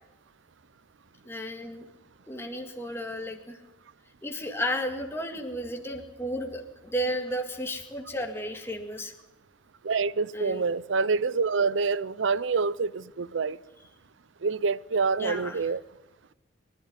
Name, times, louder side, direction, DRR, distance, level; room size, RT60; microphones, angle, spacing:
voice 1, 1.3-1.8 2.3-3.6 4.2-9.1 10.3-10.6 15.2-15.6, equal, 15° left, 2.0 m, -33 dB
voice 2, 9.8-13.6 14.4-15.8, right 4 dB, 80° right, 0.6 m, -26 dB
24.0 x 11.5 x 9.7 m
head